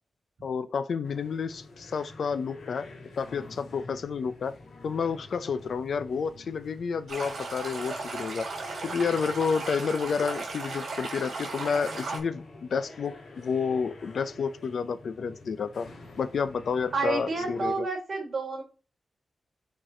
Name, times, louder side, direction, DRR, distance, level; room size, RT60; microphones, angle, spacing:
voice 1, 0.4-2.9 3.2-4.5 4.8-8.5 8.8-15.9 16.2-17.9, left 6 dB, 65° left, 0.7 m, -30 dB
sound 1, 1.0-17.8, left 2 dB, 90° left, 2.6 m, -48 dB
Stream, 7.1-12.2, right 3 dB, 60° right, 3.9 m, -36 dB
voice 2, 16.9-18.6, right 3 dB, 45° right, 4.4 m, -29 dB
7.3 x 4.7 x 4.4 m
wide cardioid pair, 155°, 0 cm